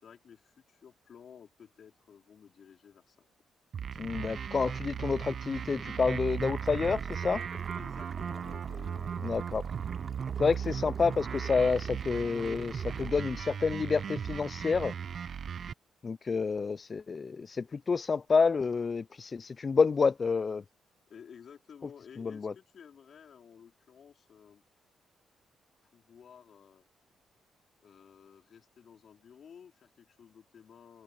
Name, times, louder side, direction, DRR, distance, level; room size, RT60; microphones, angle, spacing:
voice 1, 0.0-3.3 7.8-9.6 21.1-24.6 25.8-26.9 27.8-31.0, left 7 dB, 60° left, 4.2 m, -54 dB
sound 1, 3.7-15.7, right 7 dB, 55° right, 0.7 m, -37 dB
voice 2, 4.0-7.4 9.2-9.6 10.4-14.9 16.0-20.6 22.2-22.5, left 5 dB, 40° left, 0.3 m, -29 dB
sound 2, 6.3-13.1, right 4 dB, 40° right, 4.1 m, -53 dB
open air
cardioid pair, 90°, 0 cm